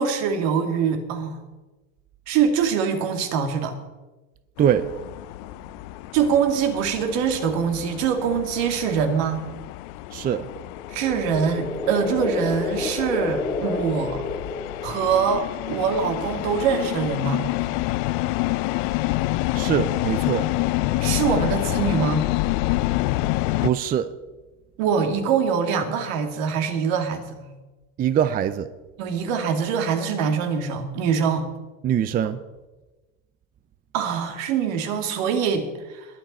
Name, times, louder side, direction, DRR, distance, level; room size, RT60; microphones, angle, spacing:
voice 1, 0.0-1.4 2.3-3.8 6.1-9.4 10.9-14.2 14.8-17.5 21.0-22.2 24.8-27.6 29.0-31.5 33.9-36.1, right 6 dB, 65° right, 2.4 m, -24 dB
sound 1, 4.6-23.7, left 18 dB, 55° left, 0.7 m, -28 dB
voice 2, 10.1-10.5 19.5-20.5 23.6-24.1 28.0-28.7 31.8-32.4, right 9 dB, 20° right, 0.5 m, -22 dB
sound 2, 10.7-15.2, left 3 dB, 10° left, 0.9 m, -30 dB
21.5 x 8.9 x 4.3 m
supercardioid pair, 115°, 42 cm